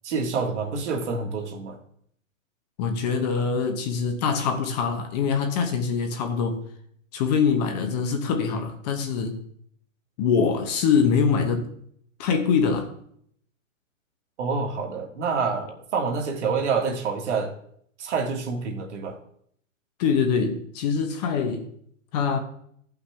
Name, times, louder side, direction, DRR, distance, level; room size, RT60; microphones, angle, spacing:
voice 1, 0.0-1.8 14.4-17.5 18.0-19.2, right 5 dB, 60° right, 2 dB, 1.9 m, -27 dB
voice 2, 2.8-6.6 7.1-9.4 10.2-11.7 12.2-12.9 20.0-21.7 22.1-22.4, left 6 dB, 30° left, 6 dB, 0.9 m, -24 dB
14.0 x 5.8 x 3.4 m, 0.65 s
hypercardioid pair, 145°, 40 cm